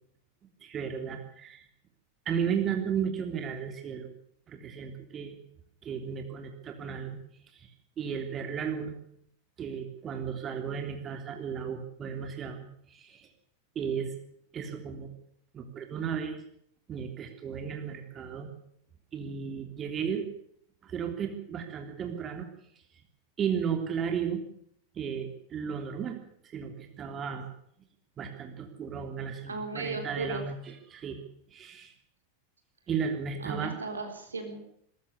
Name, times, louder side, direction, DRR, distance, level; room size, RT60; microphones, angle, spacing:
voice 1, 0.6-1.6 2.2-4.1 4.5-5.4 5.8-7.2 7.5-7.7 8.0-8.9 9.6-12.6 12.9-13.3 13.7-14.1 14.5-15.1 15.5-16.4 16.9-18.5 19.1-20.3 20.8-22.5 23.4-24.4 24.9-26.2 26.5-27.5 28.2-30.6 30.9-31.2 31.5-31.9 32.9-33.7, right 7 dB, 25° right, 5 dB, 3.2 m, -34 dB
voice 2, 29.5-30.5 33.4-34.8, right 3 dB, 75° right, 5 dB, 3.8 m, -36 dB
21.0 x 13.5 x 9.6 m, 0.69 s
figure-of-eight pair, 90°, 0 cm